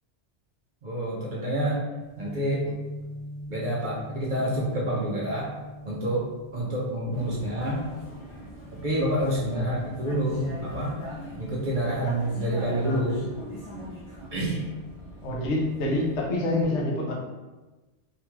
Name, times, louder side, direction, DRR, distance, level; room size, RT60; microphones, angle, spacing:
voice 1, 0.8-1.9 2.2-2.7 3.5-5.5 5.8-7.9 8.7-11.0 11.4-13.3 14.3-14.6, right 1 dB, 55° right, -5 dB, 0.6 m, -28 dB
sound 1, 2.0-12.1 12.4-13.1, equal, 85° right, 1.0 m, -43 dB
Vehicle, 7.1-16.2, equal, 45° left, 0.4 m, -42 dB
voice 2, 15.2-17.1, left 1 dB, 75° left, -2 dB, 0.9 m, -26 dB
2.8 x 2.2 x 3.0 m, 1.2 s
omnidirectional pair, 1.2 m